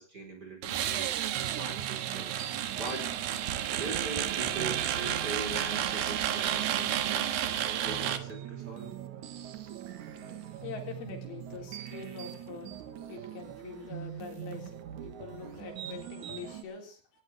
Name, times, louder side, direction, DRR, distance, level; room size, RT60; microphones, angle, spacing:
voice 1, 0.0-3.1 3.7-9.0, right 2 dB, 25° right, 2 dB, 4.7 m, -42 dB
sound 1, 0.6-8.2, right 11 dB, 75° right, 3.0 m, -31 dB
sound 2, 1.3-16.6, right 10 dB, 60° right, 2.6 m, -43 dB
voice 2, 10.0-17.2, left 6 dB, 75° left, 2 dB, 5.5 m, -45 dB
19.0 x 17.5 x 3.5 m, 0.36 s
omnidirectional pair, 4.4 m